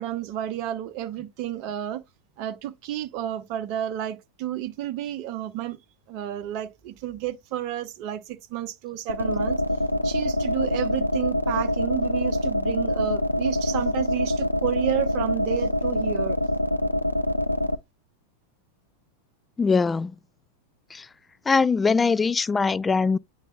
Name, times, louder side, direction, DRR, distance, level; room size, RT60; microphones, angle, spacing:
voice 1, 0.0-2.0 2.4-5.8 6.1-9.6 10.0-16.4, right 12 dB, 45° right, 0.9 m, -31 dB
sound 1, 9.1-17.7, left 1 dB, 85° left, 0.4 m, -25 dB
voice 2, 19.6-20.1 20.9-21.1 21.5-23.2, left 4 dB, 15° left, 0.3 m, -22 dB
9.1 x 4.7 x 2.3 m
figure-of-eight pair, 90°, 0 cm